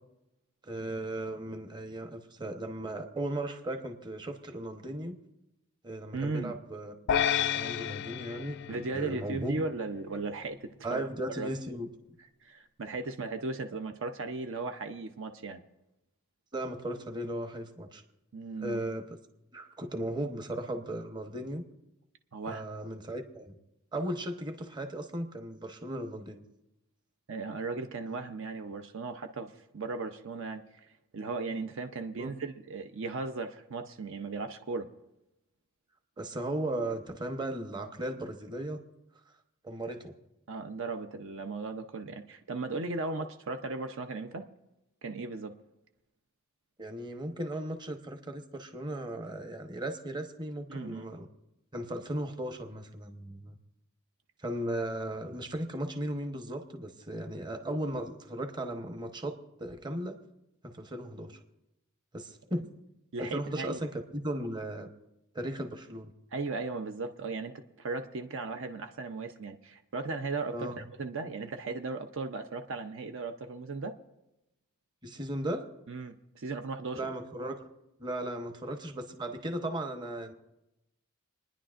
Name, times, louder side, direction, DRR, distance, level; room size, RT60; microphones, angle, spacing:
voice 1, 0.6-5.1 5.8-6.9 7.5-9.6 10.8-11.9 16.5-18.0 18.6-19.1 19.5-21.6 22.5-23.6 23.9-26.4 32.2-32.3 36.2-38.8 39.6-40.1 43.2-43.3 46.8-51.3 51.7-53.6 54.4-60.2 60.6-61.4 62.1-62.7 63.2-64.9 65.3-66.1 70.5-70.8 75.0-75.7 76.9-77.7 78.0-80.3, right 1 dB, 20° right, 5 dB, 0.9 m, -36 dB
voice 2, 6.1-6.6 8.7-11.0 11.4-11.5 12.4-15.6 18.3-18.8 22.3-22.6 27.3-34.9 40.5-44.5 45.0-45.6 50.7-51.1 63.1-63.8 66.3-74.0 75.9-77.0, right 3 dB, 60° right, 6 dB, 0.6 m, -37 dB
sound 1, 7.1-9.6, left 8 dB, 55° left, 0.4 m, -31 dB
28.5 x 10.0 x 2.5 m, 0.92 s
head